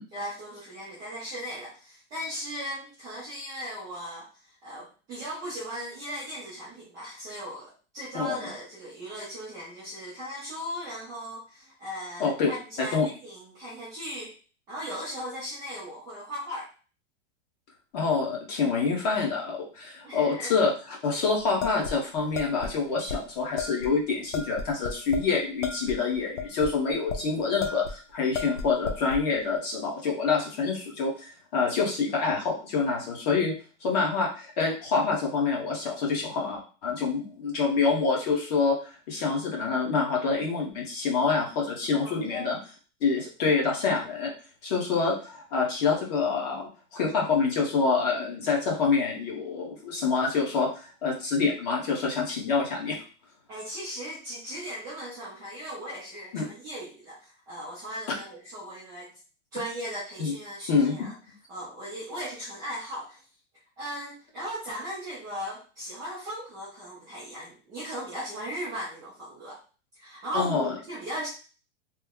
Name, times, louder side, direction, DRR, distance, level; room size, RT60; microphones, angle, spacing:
voice 1, 0.1-4.3 4.6-13.0 13.2-14.3 14.7-16.7 20.0-20.5 42.0-42.6 53.5-59.1 59.5-61.1 61.5-63.2 63.8-69.6 69.9-71.3, equal, 10° right, -9 dB, 0.4 m, -37 dB
voice 2, 12.2-12.5 12.9-13.1 17.9-33.5 33.8-42.6 43.0-44.3 44.6-53.0 56.3-56.5 60.2-60.3 60.7-61.1 70.3-70.7, left 4 dB, 35° left, -1 dB, 1.0 m, -26 dB
sound 1, 21.6-22.7 23.1-23.2 23.6-23.9 24.3-25.3 25.6-27.2 27.6-28.0 28.3-29.2, left 5 dB, 80° left, 0.8 m, -33 dB
3.1 x 2.0 x 3.5 m, 0.36 s
supercardioid pair, 170°, 36 cm